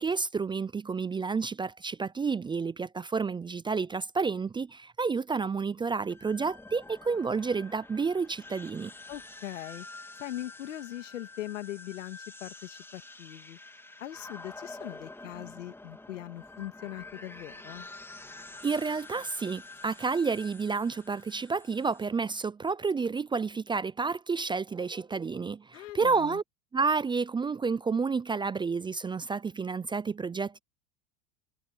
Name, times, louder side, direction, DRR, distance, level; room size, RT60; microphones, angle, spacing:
voice 1, 0.0-8.9 18.6-26.4 26.7-30.6, right 4 dB, 15° right, 0.5 m, -30 dB
sound 1, 6.1-22.1, left 2 dB, 5° left, 3.8 m, -48 dB
voice 2, 9.1-9.9 10.2-13.6 14.0-17.9 25.7-26.4, left 14 dB, 85° left, 2.4 m, -41 dB
hypercardioid pair, 105°, 37 cm